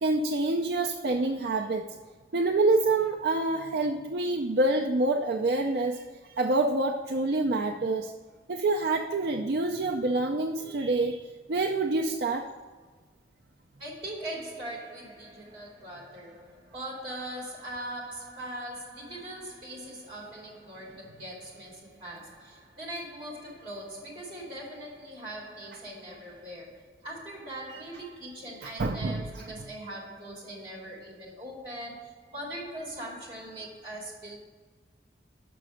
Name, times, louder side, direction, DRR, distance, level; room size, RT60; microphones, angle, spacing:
voice 1, 0.0-2.0 2.3-6.0 6.4-8.1 8.5-11.2 11.5-12.5 28.6-29.4, right 2 dB, 65° right, 0.5 m, -27 dB
voice 2, 13.8-34.4, right 1 dB, 30° right, 2.6 m, -41 dB
6.1 x 5.8 x 6.3 m
head